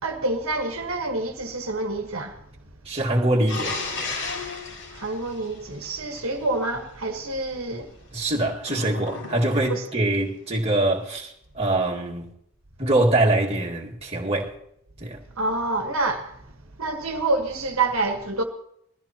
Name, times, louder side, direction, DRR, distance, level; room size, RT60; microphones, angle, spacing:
voice 1, 0.0-2.4 4.9-7.9 9.7-9.8 15.4-16.4 16.8-18.4, right 2 dB, 70° right, 1.4 m, -27 dB
voice 2, 2.9-3.8 8.1-12.3 12.8-14.5 15.0-15.2, right 1 dB, 25° right, 2.0 m, -23 dB
sound 1, 3.5-6.2 8.6-10.0, left 3 dB, 65° left, 5.7 m, -34 dB
21.5 x 14.0 x 2.9 m
head